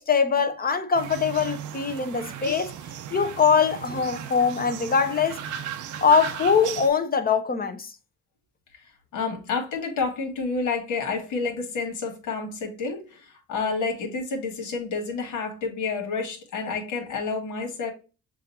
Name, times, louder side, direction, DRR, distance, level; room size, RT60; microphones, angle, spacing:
voice 1, 0.0-2.7 3.1-5.4 6.0-7.9, left 6 dB, 30° left, 0.8 m, -22 dB
sound 1, 0.9-6.9, right 9 dB, 80° right, 0.6 m, -36 dB
voice 2, 8.8-17.9, left 4 dB, 80° left, 1.7 m, -29 dB
7.0 x 2.7 x 2.7 m
cardioid pair, 90°, 30 cm